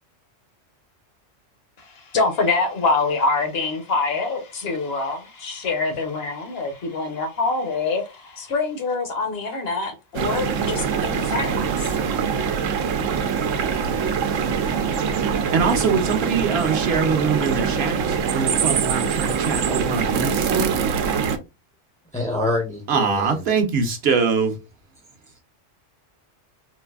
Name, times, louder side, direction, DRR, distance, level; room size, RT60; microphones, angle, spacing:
voice 1, 1.8-11.8, left 3 dB, 60° left, 0.9 m, -25 dB
sound 1, 10.1-21.4, right 6 dB, 90° right, 0.9 m, -23 dB
voice 2, 15.3-20.8 22.9-24.6, right 5 dB, 60° right, 0.8 m, -23 dB
voice 3, 22.1-23.4, left 2 dB, 10° left, 0.4 m, -26 dB
3.9 x 2.5 x 2.3 m
omnidirectional pair, 1.3 m